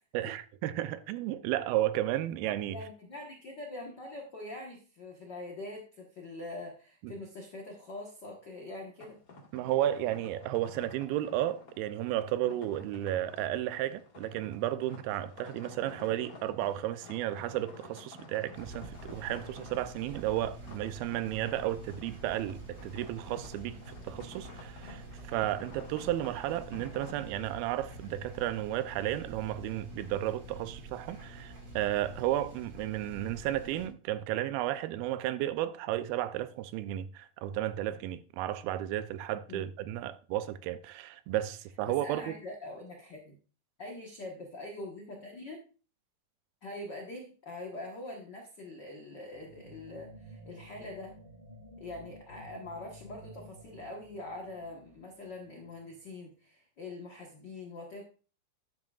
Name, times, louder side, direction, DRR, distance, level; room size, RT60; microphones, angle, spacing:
voice 1, 0.1-2.8 7.0-7.1 9.5-42.4, right 13 dB, 85° right, 2.5 m, -33 dB
voice 2, 2.7-9.2 23.7-23.8 39.5-39.7 41.9-43.3 43.8-45.6 46.6-51.2 51.8-58.0, left 2 dB, 70° left, 1.0 m, -43 dB
sound 1, 9.0-27.2, left 3 dB, 40° left, 1.3 m, -51 dB
sound 2, 18.5-33.9, right 2 dB, 35° right, 2.5 m, -47 dB
sound 3, 49.3-56.1, equal, 55° right, 0.6 m, -53 dB
10.5 x 10.5 x 2.4 m
omnidirectional pair, 4.2 m